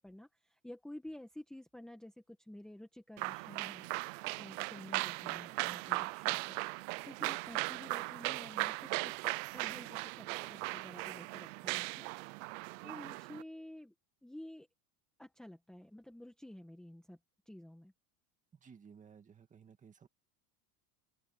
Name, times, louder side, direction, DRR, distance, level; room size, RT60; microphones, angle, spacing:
voice 1, 0.0-3.9 4.4-6.6 7.0-12.1 12.8-13.9 14.2-14.7 15.2-17.2 17.4-17.9, left 1 dB, ahead, 1.3 m, -51 dB
sound 1, 3.2-13.4, right 25 dB, 55° right, 0.6 m, -38 dB
voice 2, 18.5-20.1, right 6 dB, 15° right, 2.0 m, -57 dB
cardioid pair, 170°, 46 cm